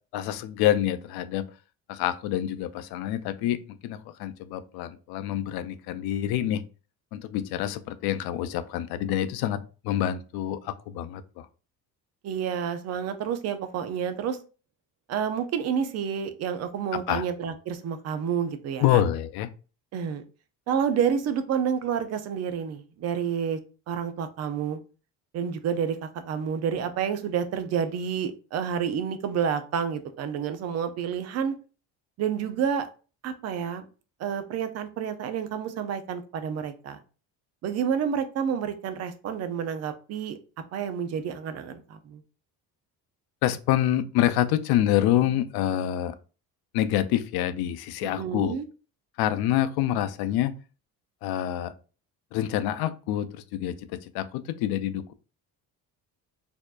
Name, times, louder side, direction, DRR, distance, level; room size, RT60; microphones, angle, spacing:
voice 1, 0.1-1.5 1.9-6.6 7.1-11.5 17.1-17.2 18.8-19.5 43.4-46.1 46.7-48.6 49.2-50.6 51.2-51.7 52.3-55.1, left 12 dB, 90° left, 0.5 m, -27 dB
voice 2, 12.2-14.4 15.1-19.0 19.9-20.2 20.7-23.6 23.9-24.8 25.3-31.6 32.2-32.9 33.2-33.9 34.2-37.0 37.6-40.4 40.7-42.2 48.0-48.7, right 7 dB, 45° right, 0.5 m, -29 dB
4.3 x 2.8 x 2.4 m
cardioid pair, 170°, 37 cm